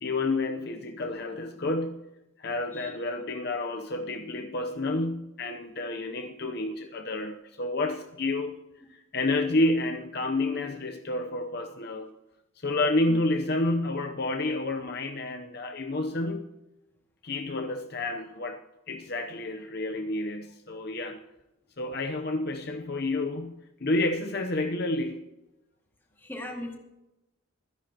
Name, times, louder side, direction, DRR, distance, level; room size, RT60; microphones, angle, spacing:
voice 1, 0.0-2.0 2.4-8.6 8.9-12.1 12.6-16.5 17.2-18.6 18.9-21.2 21.8-25.2, left 2 dB, 50° left, 5 dB, 0.8 m, -30 dB
voice 2, 26.2-26.8, left 1 dB, 10° left, 1 dB, 2.1 m, -38 dB
25.0 x 10.5 x 2.9 m, 0.94 s
head